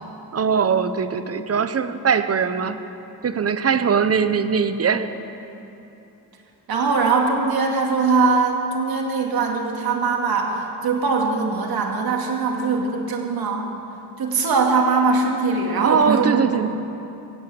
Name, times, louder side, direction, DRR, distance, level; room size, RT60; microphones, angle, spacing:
voice 1, 0.3-2.8 3.2-5.1 15.8-16.7, right 6 dB, 40° right, 11 dB, 0.8 m, -21 dB
voice 2, 6.7-13.7 14.2-16.8, right 4 dB, 70° right, 1 dB, 2.3 m, -21 dB
16.5 x 8.5 x 7.7 m, 2.9 s
cardioid pair, 80°, 38 cm